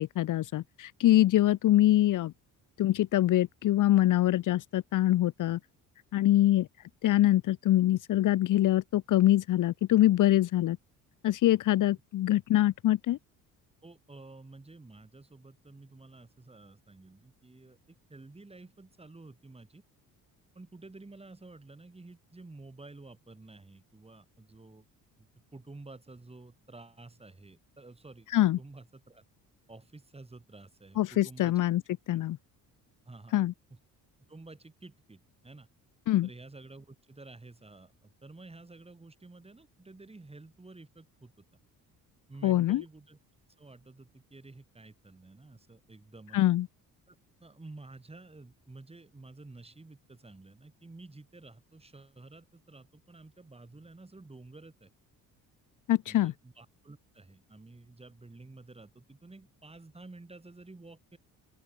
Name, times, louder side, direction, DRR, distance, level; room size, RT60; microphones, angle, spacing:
voice 1, 0.0-2.3 2.8-5.6 6.1-6.7 7.0-10.8 11.2-13.2 28.3-28.6 31.0-31.8 32.1-32.4 33.3-33.5 36.1-36.3 42.4-42.8 46.3-46.7 55.9-56.3, left 14 dB, 60° left, 0.8 m, -24 dB
voice 2, 13.8-19.8 20.6-24.9 25.2-29.2 29.7-31.6 32.1-32.2 33.1-33.8 34.3-35.7 36.2-41.5 42.3-43.2 43.6-46.4 47.1-47.2 47.4-54.9 56.1-61.2, right 2 dB, 15° right, 5.3 m, -51 dB
open air
cardioid pair, 85°, 36 cm